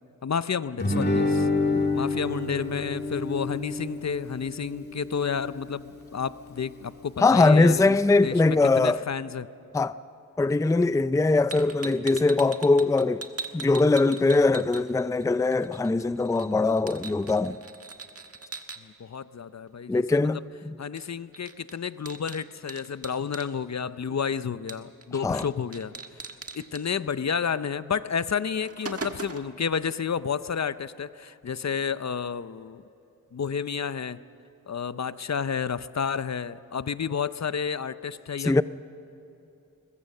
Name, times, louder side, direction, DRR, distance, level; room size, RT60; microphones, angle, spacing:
voice 1, 0.2-1.5 1.9-9.5 18.8-20.4 20.8-25.9 26.5-32.8 33.3-34.2 34.7-38.6, left 6 dB, 55° left, 0.6 m, -31 dB
Guitar, 0.8-5.9, left 3 dB, 30° left, 3.0 m, -28 dB
voice 2, 7.2-9.0 9.7-9.9 10.4-13.2 13.5-17.6 19.9-20.4 20.7-20.8 25.2-25.4 38.4-38.6, left 3 dB, 10° left, 0.4 m, -21 dB
sound 1, 11.5-15.2 15.5-18.8 21.0-21.1 21.3-23.5 24.7-25.1 25.4-25.5 25.7-26.8 27.9-28.0 28.4-29.6, right 4 dB, 45° right, 1.4 m, -40 dB
22.0 x 21.0 x 6.6 m
wide cardioid pair, 55°, 33 cm